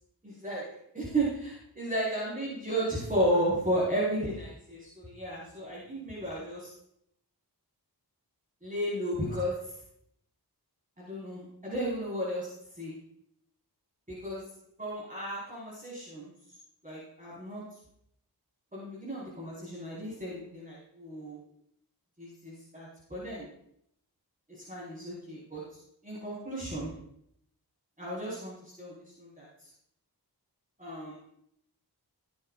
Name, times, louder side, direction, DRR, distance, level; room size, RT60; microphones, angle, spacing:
voice 1, 0.2-0.7 0.9-6.7 8.6-9.6 11.0-13.0 14.1-14.4 14.8-16.3 16.8-17.6 18.7-21.4 22.2-23.5 24.5-25.6 26.0-26.9 28.0-29.5 30.8-31.2, right 1 dB, 20° right, -7 dB, 5.3 m, -33 dB
17.0 x 9.9 x 2.6 m, 0.73 s
wide cardioid pair, 55°, 40 cm